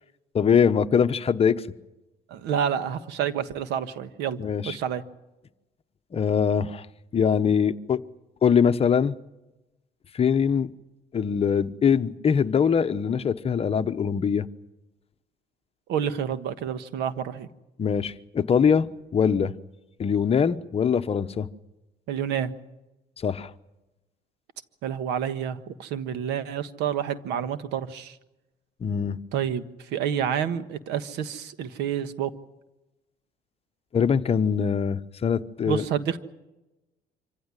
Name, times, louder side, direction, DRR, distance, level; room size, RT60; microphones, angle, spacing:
voice 1, 0.3-1.6 4.4-4.8 6.1-6.9 7.1-8.0 8.4-9.1 10.1-10.7 11.1-14.5 17.8-19.5 20.0-21.5 23.2-23.5 28.8-29.2 33.9-35.8, left 7 dB, 35° left, 1.0 m, -22 dB
voice 2, 2.3-4.4 4.6-5.0 15.9-17.5 22.1-22.5 24.8-28.1 29.3-29.6 29.9-32.3 35.6-36.2, right 9 dB, 85° right, 1.5 m, -28 dB
25.5 x 16.0 x 9.8 m
cardioid pair, 110°, 17 cm